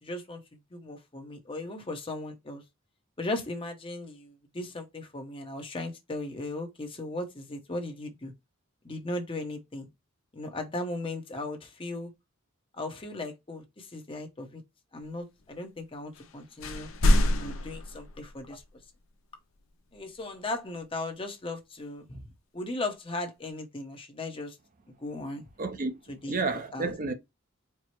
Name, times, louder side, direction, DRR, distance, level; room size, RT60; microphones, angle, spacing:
voice 1, 0.0-2.6 3.2-8.3 8.8-9.9 10.3-12.1 12.7-14.6 14.9-16.9 17.3-18.6 19.9-22.3 22.5-24.6 25.0-25.5 26.1-26.4 26.7-26.9, left 2 dB, 25° left, 0.8 m, -37 dB
sound 1, 16.1-16.3 16.6-18.7, left 1 dB, 75° left, 0.7 m, -26 dB
voice 2, 25.6-27.1, right 3 dB, 40° right, 0.6 m, -31 dB
4.6 x 2.0 x 4.3 m
head